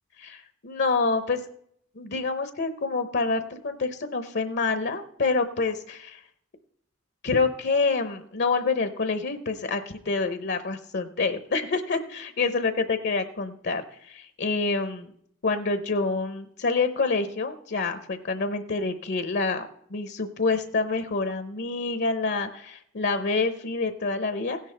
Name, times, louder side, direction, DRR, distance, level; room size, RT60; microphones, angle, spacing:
voice 1, 0.2-1.4 2.0-6.2 7.2-15.1 15.4-24.6, left 4 dB, 55° left, 10 dB, 0.8 m, -27 dB
16.5 x 10.0 x 3.3 m, 0.68 s
head